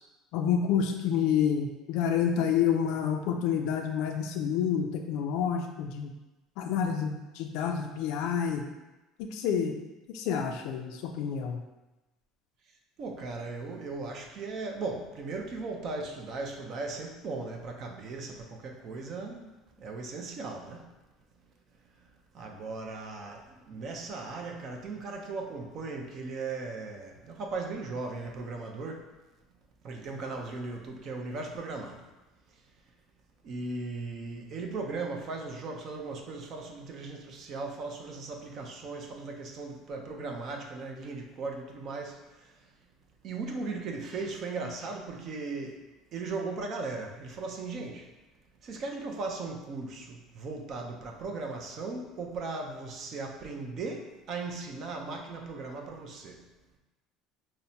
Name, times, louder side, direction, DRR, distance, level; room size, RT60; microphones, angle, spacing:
voice 1, 0.3-6.1 6.6-8.7 9.2-9.7 10.1-11.6, left 8 dB, 70° left, 4 dB, 0.4 m, -28 dB
voice 2, 13.0-19.5 19.8-20.9 22.3-29.1 29.8-32.0 33.4-42.6 43.2-45.8 46.1-48.1 48.6-56.4, right 3 dB, 45° right, 2 dB, 0.5 m, -37 dB
5.6 x 2.1 x 2.7 m, 1.1 s
cardioid pair, 145°, 0 cm